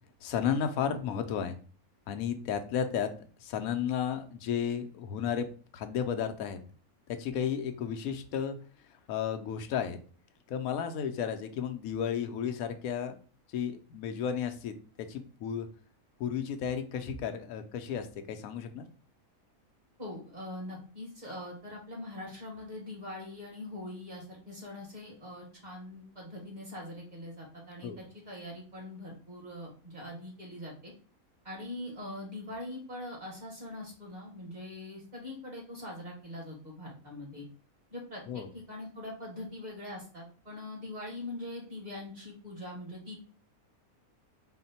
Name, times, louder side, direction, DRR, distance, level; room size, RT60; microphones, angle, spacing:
voice 1, 0.2-1.6 2.1-3.1 3.4-5.5 5.7-6.6 7.1-8.6 9.1-10.0 10.5-13.2 13.5-15.7 16.2-18.8 27.8-28.0 38.3-38.5, left 8 dB, 75° left, 7 dB, 1.0 m, -33 dB
voice 2, 20.0-30.9 31.4-37.4 37.9-43.2, left 1 dB, 30° right, -2 dB, 1.4 m, -42 dB
4.3 x 2.1 x 4.0 m, 0.41 s
omnidirectional pair, 1.5 m